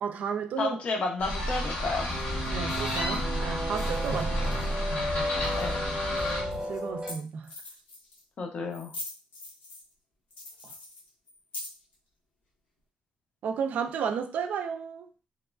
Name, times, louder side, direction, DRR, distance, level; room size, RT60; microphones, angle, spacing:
voice 1, 0.0-0.8 2.5-4.3 4.6-4.7 6.7-7.5 10.6-10.7 13.4-15.1, right 6 dB, 60° right, 0.3 m, -33 dB
voice 2, 0.6-2.1 4.1-4.2 5.6-5.8 8.4-8.9, left 3 dB, 45° left, 0.5 m, -31 dB
sound 1, 1.2-6.4, left 1 dB, 70° left, 1.2 m, -31 dB
sound 2, 2.1-7.1, equal, 20° right, 0.8 m, -33 dB
sound 3, 6.0-6.1 6.8-6.9 7.1-7.2 7.4-8.2 8.7-9.9 10.3-11.9, left 2 dB, 90° left, 1.0 m, -41 dB
2.9 x 2.3 x 2.2 m
cardioid pair, 155°, 3 cm